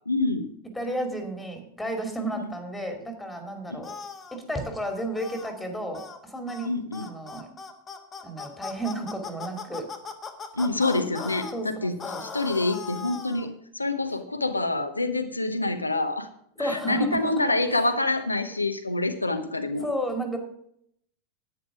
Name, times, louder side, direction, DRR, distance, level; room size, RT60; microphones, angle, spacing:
voice 1, 0.1-0.5 2.4-2.5 3.7-3.8 6.6-7.1 10.5-16.3 16.6-19.9, left 2 dB, 85° left, 7 dB, 0.9 m, -27 dB
voice 2, 0.7-3.9 4.3-6.7 7.0-7.5 8.2-9.9 11.5-12.2 16.6-17.3 19.8-20.4, right 1 dB, 5° left, 5 dB, 2.6 m, -32 dB
sound 1, 3.8-4.4 5.2-5.5 5.9-6.2 6.5-6.7 6.9-11.5 12.0-13.5, left 6 dB, 20° left, 1.5 m, -38 dB
10.5 x 9.6 x 4.9 m, 0.70 s
figure-of-eight pair, 90°, 0 cm